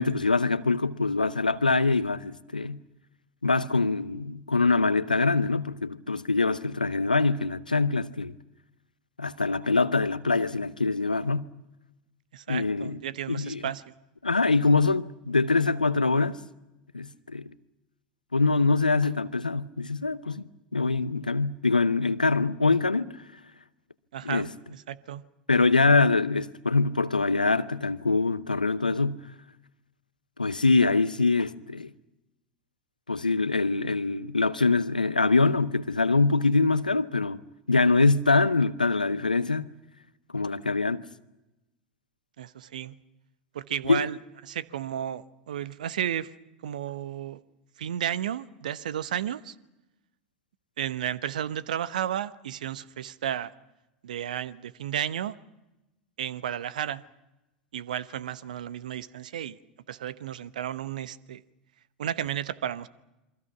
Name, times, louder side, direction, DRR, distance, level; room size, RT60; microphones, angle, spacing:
voice 1, 0.0-2.8 3.4-8.3 9.2-11.4 12.5-13.0 13.3-13.7 14.2-16.4 16.9-17.5 18.3-20.4 20.7-23.1 24.2-24.5 25.5-29.2 30.4-31.9 33.1-37.4 37.7-39.7 40.3-41.1 43.8-44.1, left 3 dB, 90° left, 0.8 m, -24 dB
voice 2, 12.3-13.8 24.1-25.2 42.4-43.0 43.5-44.2 44.4-46.3 46.6-47.4 47.8-49.5 50.8-53.5 54.0-55.3 56.2-57.0 57.7-59.6 59.9-61.4 62.0-62.9, right 10 dB, 70° right, 1.0 m, -33 dB
28.0 x 23.5 x 6.0 m
figure-of-eight pair, 80°, 4 cm